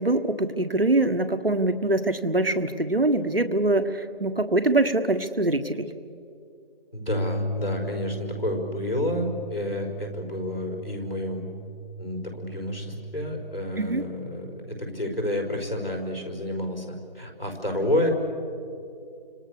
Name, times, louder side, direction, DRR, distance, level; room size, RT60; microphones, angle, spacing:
voice 1, 0.0-5.9 13.8-14.0, right 2 dB, 70° right, 8 dB, 1.6 m, -23 dB
voice 2, 6.9-11.5 12.0-12.9 13.1-18.1, left 1 dB, 70° left, 2 dB, 5.6 m, -30 dB
Bass guitar, 7.1-13.3, right 1 dB, 45° left, 1.6 m, -35 dB
30.0 x 26.5 x 6.8 m, 2.6 s
figure-of-eight pair, 170°, 30 cm